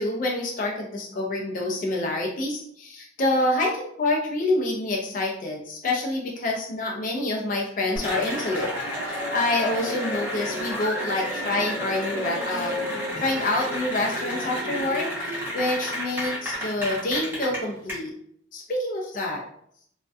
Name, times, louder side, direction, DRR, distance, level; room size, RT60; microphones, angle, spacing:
voice 1, 0.0-8.7 9.0-18.1 18.5-19.4, left 2 dB, 40° left, -1 dB, 0.4 m, -27 dB
Cheering / Applause, 8.0-17.9, equal, 10° right, 0.7 m, -30 dB
2.5 x 2.1 x 2.3 m, 0.68 s
head